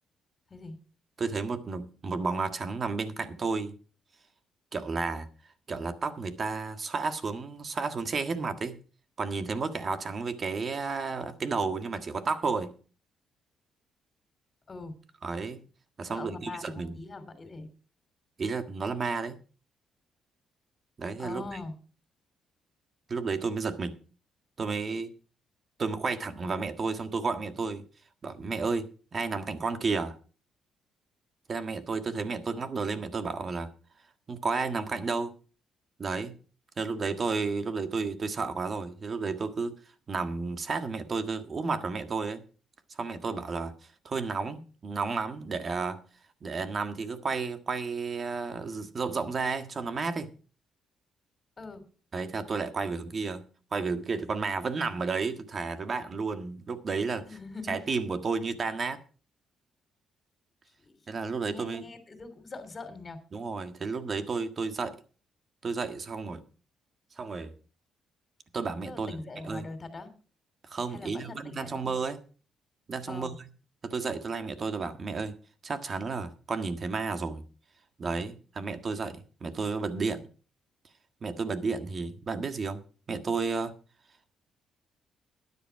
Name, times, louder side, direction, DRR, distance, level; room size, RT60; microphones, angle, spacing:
voice 1, 1.2-3.7 4.7-5.3 5.7-8.8 9.2-12.7 15.2-15.6 16.0-16.9 18.4-19.4 21.0-21.4 23.1-23.9 24.6-25.1 25.8-27.8 28.2-28.9 29.1-30.2 31.5-33.7 34.3-35.3 36.0-36.4 36.8-39.7 40.1-42.4 43.0-43.7 44.0-46.0 46.4-50.3 52.1-53.4 53.7-57.3 57.7-59.0 61.1-61.8 63.3-65.0 65.6-66.4 67.2-67.5 68.5-69.6 70.6-72.2 72.9-73.3 73.8-75.3 75.6-77.4 78.0-80.2 81.2-82.8 83.1-83.7, right 4 dB, 40° right, 1.6 m, -32 dB
voice 2, 14.7-15.0 16.1-17.7 21.2-21.7 51.6-51.9 57.3-57.9 60.8-61.0 61.4-63.2 68.8-70.1 70.9-72.1 73.1-73.4, left 3 dB, 30° left, 3.0 m, -42 dB
12.5 x 10.5 x 4.7 m
cardioid pair, 90°, 0 cm